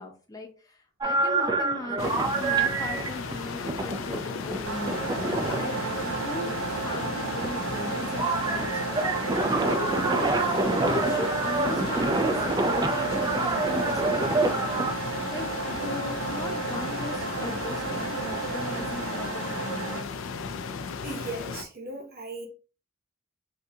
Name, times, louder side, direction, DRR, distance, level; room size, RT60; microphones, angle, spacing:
voice 1, 0.0-8.7 9.6-14.9 15.3-15.5 15.8-20.1, left 2 dB, 15° left, 0.6 m, -38 dB
sound 1, 1.0-14.9, right 3 dB, 20° right, 0.3 m, -28 dB
sound 2, 2.0-21.6, left 5 dB, 70° left, 0.4 m, -35 dB
sound 3, 4.6-20.0, right 4 dB, 90° right, 0.5 m, -32 dB
voice 2, 21.0-22.5, right 2 dB, 45° right, 0.8 m, -37 dB
3.4 x 2.6 x 2.7 m
head